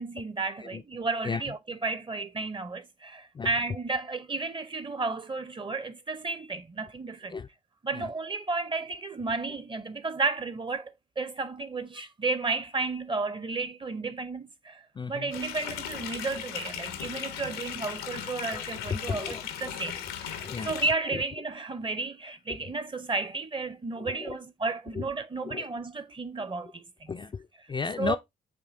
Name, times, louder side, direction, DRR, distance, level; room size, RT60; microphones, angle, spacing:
voice 1, 0.0-7.4 7.8-27.1 28.0-28.2, right 3 dB, 25° right, 0.7 m, -33 dB
voice 2, 14.9-15.3 18.5-18.6 18.9-19.4 20.4-20.7 21.0-21.2 24.0-24.4 24.9-25.1 25.4-25.7 27.1-28.2, left 5 dB, 25° left, 0.4 m, -34 dB
sound 1, 15.3-20.9, left 9 dB, 85° left, 0.8 m, -37 dB
7.1 x 2.8 x 2.6 m
supercardioid pair, 60°, 20 cm